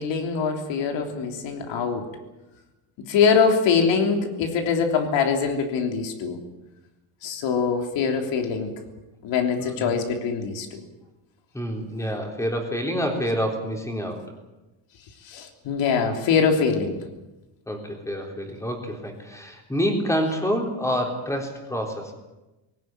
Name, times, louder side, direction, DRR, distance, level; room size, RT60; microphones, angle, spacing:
voice 1, 0.0-2.1 3.1-6.4 7.2-8.7 9.2-10.8 15.3-17.0, left 6 dB, 70° left, 4 dB, 3.4 m, -23 dB
voice 2, 9.6-10.0 11.5-14.2 17.7-22.1, equal, 5° left, 2 dB, 3.7 m, -27 dB
20.5 x 18.0 x 9.1 m, 1.0 s
cardioid pair, 165°, 46 cm